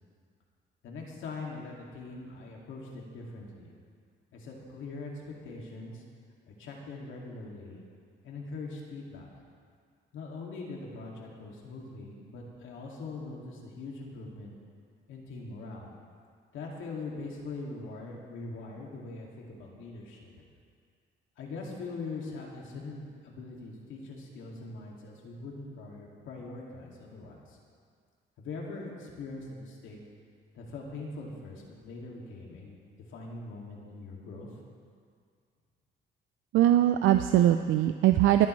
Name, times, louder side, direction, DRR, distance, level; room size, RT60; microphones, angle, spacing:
voice 1, 0.8-3.7 4.3-6.0 6.5-7.8 8.2-9.3 10.1-14.5 15.1-15.9 16.5-20.4 21.4-27.6 28.4-30.0 30.5-34.5, left 3 dB, 80° left, -2 dB, 2.3 m, -42 dB
voice 2, 36.5-38.5, right 12 dB, 85° right, 8 dB, 0.5 m, -21 dB
25.0 x 9.5 x 3.2 m, 2.1 s
cardioid pair, 90°, 20 cm